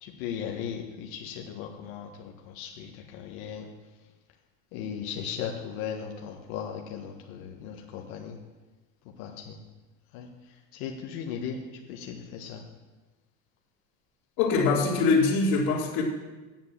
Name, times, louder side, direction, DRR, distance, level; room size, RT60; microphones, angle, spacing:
voice 1, 0.0-3.7 4.7-8.4 9.2-9.6 10.1-10.3 10.7-11.6 11.9-12.6, left 8 dB, 75° left, 0 dB, 1.5 m, -37 dB
voice 2, 14.4-16.0, left 4 dB, 55° left, -7 dB, 2.9 m, -23 dB
9.2 x 7.6 x 7.5 m, 1.2 s
cardioid pair, 145°, 41 cm